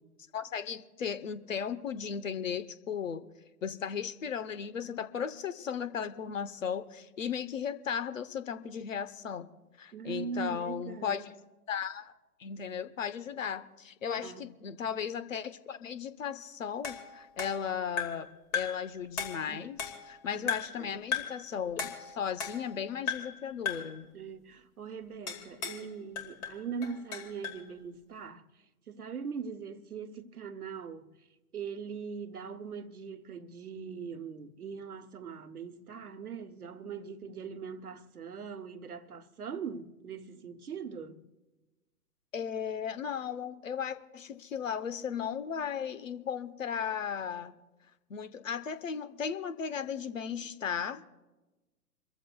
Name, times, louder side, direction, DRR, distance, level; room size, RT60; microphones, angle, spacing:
voice 1, 0.3-3.2 3.6-9.5 9.8-11.3 11.7-12.1 12.4-18.3 18.5-24.1 42.3-47.5 48.1-51.1, left 7 dB, 55° left, 1.0 m, -36 dB
voice 2, 9.9-11.3 14.2-14.5 19.5-19.7 20.3-20.4 20.8-20.9 24.1-28.4 28.9-31.1 31.5-41.2, right 6 dB, 70° right, 1.1 m, -41 dB
sound 1, 16.8-18.3 18.5-18.9 19.2-20.1 20.5-20.8 21.1-21.4 21.8-22.8 23.1-23.4 23.7-24.0 25.3-25.9 26.2-27.6, left 6 dB, 25° left, 2.1 m, -36 dB
27.5 x 14.5 x 2.3 m
figure-of-eight pair, 130°, 46 cm